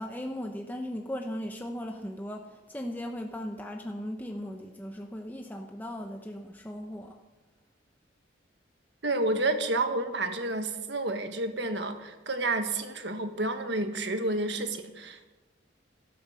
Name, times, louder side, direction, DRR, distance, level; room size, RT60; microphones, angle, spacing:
voice 1, 0.0-7.2, equal, 10° left, 3 dB, 0.9 m, -37 dB
voice 2, 9.0-15.3, right 2 dB, 65° right, 7 dB, 1.6 m, -30 dB
13.0 x 12.5 x 7.6 m, 1.1 s
head